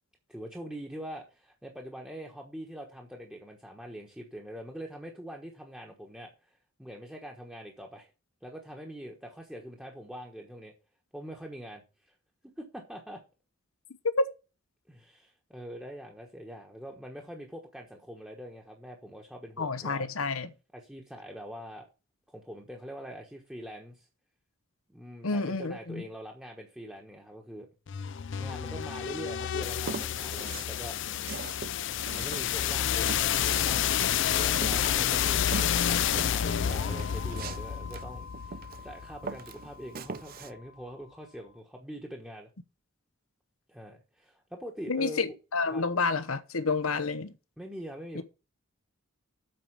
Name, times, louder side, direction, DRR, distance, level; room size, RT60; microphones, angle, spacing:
voice 1, 0.3-8.1 8.4-10.7 11.1-12.1 12.4-13.2 14.9-20.1 20.7-21.9 22.3-24.1 24.9-27.7 28.1-31.0 31.8-33.8 34.3-42.5 43.7-45.2 45.7-45.8 47.6-48.2, equal, 5° right, 1.2 m, -44 dB
voice 2, 19.6-20.5 25.2-26.0 44.9-47.3, left 3 dB, 90° left, 1.0 m, -29 dB
sound 1, 27.9-39.7, left 9 dB, 60° left, 0.5 m, -29 dB
Walk footsteps, 29.8-30.7 31.1-34.2 34.6-38.9 39.2-40.5, right 4 dB, 45° right, 0.6 m, -41 dB
7.9 x 4.9 x 7.3 m
head